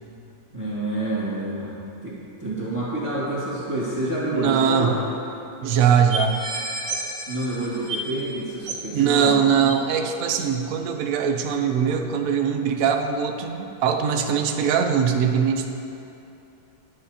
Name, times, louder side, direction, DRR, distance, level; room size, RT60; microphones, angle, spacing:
voice 1, 0.5-1.7 2.0-2.1 2.4-5.0 7.3-9.3 9.6-9.7, right 1 dB, 15° right, -9 dB, 2.0 m, -28 dB
voice 2, 4.3-5.0 5.6-6.4 8.9-15.7, right 7 dB, 60° right, 4 dB, 1.0 m, -21 dB
sound 1, 4.8-4.9 5.1-5.2 5.7-5.8 6.1-8.3 8.6-8.9 9.7-9.8, right 2 dB, 80° right, 1.8 m, -31 dB
21.0 x 8.1 x 2.8 m, 2.8 s
omnidirectional pair, 1.9 m